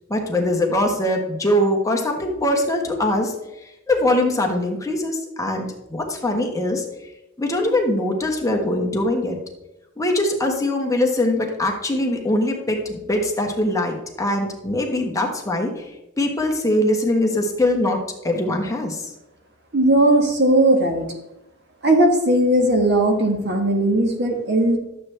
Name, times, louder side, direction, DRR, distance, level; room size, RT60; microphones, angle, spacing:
voice 1, 0.1-3.3 3.9-6.8 7.4-9.4 10.0-15.9 16.2-18.0 18.2-19.1, left 1 dB, 15° left, 1 dB, 1.3 m, -22 dB
voice 2, 19.7-21.1 21.8-24.8, right 1 dB, 55° right, 3 dB, 1.5 m, -17 dB
11.5 x 7.6 x 3.3 m, 0.94 s
head